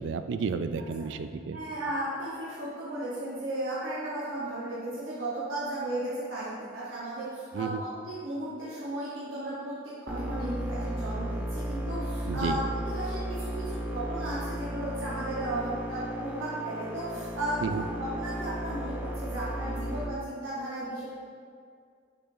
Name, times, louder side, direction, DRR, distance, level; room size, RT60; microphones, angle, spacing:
voice 1, 0.0-1.6 7.5-7.8 12.3-12.6 17.6-17.8, right 5 dB, 65° right, 10 dB, 0.3 m, -31 dB
voice 2, 1.5-21.1, right 1 dB, 90° right, -8 dB, 1.0 m, -35 dB
sound 1, 10.1-20.1, equal, 10° right, 0.5 m, -35 dB
6.3 x 6.2 x 2.6 m, 2.2 s
head